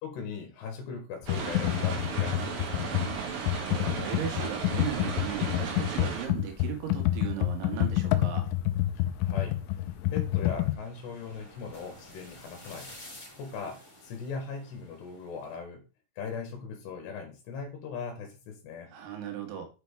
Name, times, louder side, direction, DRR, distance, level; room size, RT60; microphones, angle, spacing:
voice 1, 0.0-3.0 9.2-12.9 13.4-15.8 16.2-18.9, left 5 dB, 70° left, 3 dB, 3.3 m, -40 dB
Computer keyboard, 1.2-10.7, left 15 dB, 90° left, 3.2 m, -28 dB
sound 1, 1.3-6.3, right 5 dB, 60° right, 2.7 m, -35 dB
voice 2, 3.3-8.5 18.9-19.7, right 10 dB, 75° right, 3 dB, 3.9 m, -37 dB
sound 2, 5.5-15.6, left 1 dB, 10° left, 2.7 m, -54 dB
7.6 x 6.1 x 3.4 m, 0.32 s
omnidirectional pair, 5.5 m